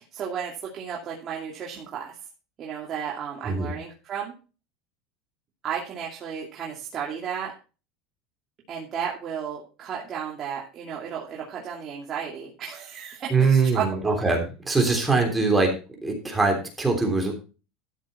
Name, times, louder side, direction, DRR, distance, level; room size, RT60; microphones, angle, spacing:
voice 1, 0.0-2.2 2.6-4.3 5.6-7.5 8.7-14.2, right 7 dB, 35° right, -3 dB, 2.5 m, -33 dB
voice 2, 13.3-15.7 16.0-17.3, right 4 dB, 10° right, 2 dB, 3.2 m, -22 dB
13.0 x 6.9 x 4.4 m, 0.33 s
supercardioid pair, 145°, 0 cm